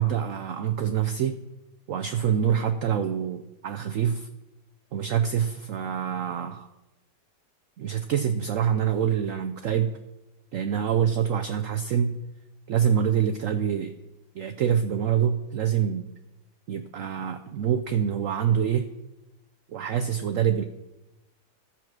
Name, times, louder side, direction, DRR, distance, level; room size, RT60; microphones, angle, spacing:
voice 1, 0.0-1.4 1.9-4.3 4.9-6.7 7.8-9.9 10.5-12.2 12.7-13.9 14.3-16.1 16.7-18.9 19.7-20.6, right 8 dB, 65° right, 7 dB, 0.8 m, -25 dB
13.0 x 7.3 x 6.1 m, 0.99 s
omnidirectional pair, 1.9 m